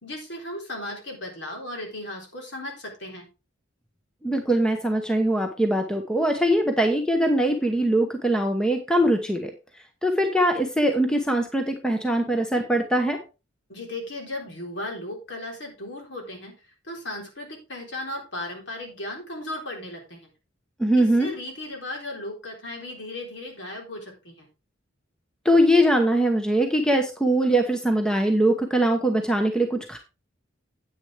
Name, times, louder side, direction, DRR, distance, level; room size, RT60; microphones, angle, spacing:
voice 1, 0.0-3.3 13.7-16.5 16.8-20.3 21.0-24.5, left 1 dB, 60° left, 1 dB, 3.8 m, -36 dB
voice 2, 4.2-9.5 10.0-13.2 20.8-21.3 25.4-30.0, right 1 dB, 5° left, 4 dB, 0.9 m, -22 dB
9.8 x 8.6 x 3.4 m, 0.29 s
head